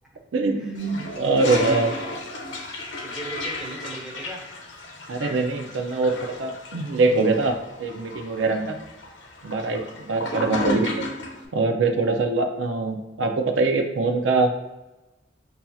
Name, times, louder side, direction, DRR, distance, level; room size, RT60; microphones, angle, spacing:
voice 1, 0.3-1.9 5.1-8.8 9.4-11.0 11.5-14.5, right 3 dB, 90° right, 5 dB, 0.5 m, -23 dB
Toilet flush, 0.8-11.4, left 2 dB, 75° left, 0.8 m, -34 dB
voice 2, 1.1-2.2 2.5-2.6 3.0-4.4 10.3-10.5, right 1 dB, 5° right, -4 dB, 0.9 m, -39 dB
5.5 x 2.7 x 2.3 m, 1.1 s
head